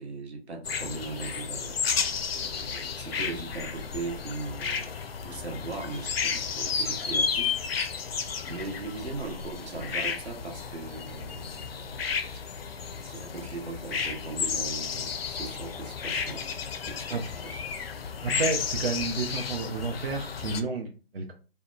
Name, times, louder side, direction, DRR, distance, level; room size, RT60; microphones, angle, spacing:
voice 1, 0.0-1.8 2.3-4.9 5.2-7.5 8.5-12.0 12.3-12.4 12.9-16.4 16.8-17.6, right 3 dB, 90° right, 2 dB, 0.9 m, -39 dB
sound 1, 0.6-20.6, left 6 dB, 65° left, 0.5 m, -32 dB
voice 2, 18.2-21.3, right 4 dB, 60° right, 1 dB, 0.6 m, -31 dB
2.7 x 2.1 x 2.3 m, 0.35 s
figure-of-eight pair, 150°, 32 cm